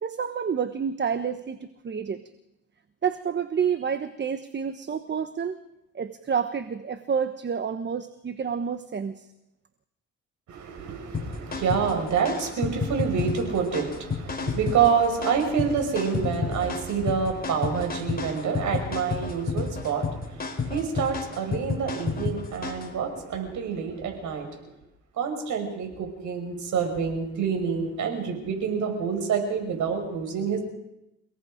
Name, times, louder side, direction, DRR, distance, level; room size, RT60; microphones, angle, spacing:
voice 1, 0.0-2.2 3.0-5.6 5.9-9.3, right 7 dB, 35° right, 10 dB, 1.2 m, -29 dB
voice 2, 10.5-24.5 25.2-30.6, right 6 dB, 75° right, 4 dB, 6.0 m, -27 dB
sound 1, 11.1-22.9, left 4 dB, 30° left, 3.7 m, -31 dB
30.0 x 18.0 x 5.2 m, 0.88 s
cardioid pair, 90°, 30 cm